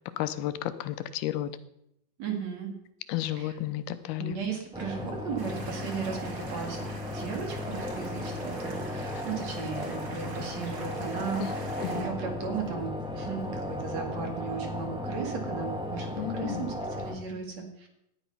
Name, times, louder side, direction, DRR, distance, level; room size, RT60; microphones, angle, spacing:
voice 1, 0.2-1.5 3.1-4.4 9.1-9.2 11.4-11.5 11.8-12.1 16.2-16.7, left 13 dB, 90° left, 12 dB, 2.8 m, -32 dB
voice 2, 2.2-2.7 3.3-3.5 4.2-17.9, right 6 dB, 50° right, 3 dB, 3.2 m, -36 dB
sound 1, 4.7-17.1, left 1 dB, 5° right, 0.5 m, -35 dB
sound 2, 5.4-12.0, right 2 dB, 30° right, 2.4 m, -46 dB
18.0 x 11.5 x 5.6 m, 0.80 s
omnidirectional pair, 4.3 m